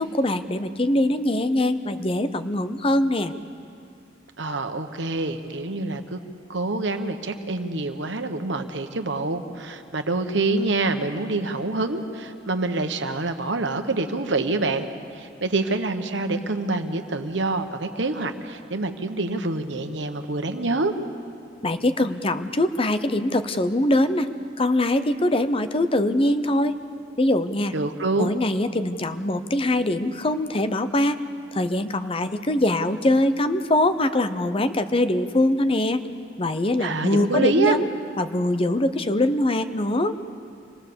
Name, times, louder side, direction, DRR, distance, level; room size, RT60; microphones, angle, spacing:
voice 1, 0.0-3.3 21.6-24.3 24.6-26.8 27.2-27.7 28.2-31.2 31.5-36.0 36.4-37.9 38.2-40.1, left 1 dB, 30° left, 10 dB, 0.7 m, -22 dB
voice 2, 4.4-6.2 6.5-14.9 15.1-20.9 27.7-28.4 36.8-37.8, right 3 dB, 70° right, 7 dB, 1.3 m, -26 dB
26.0 x 18.0 x 7.0 m, 2.4 s
head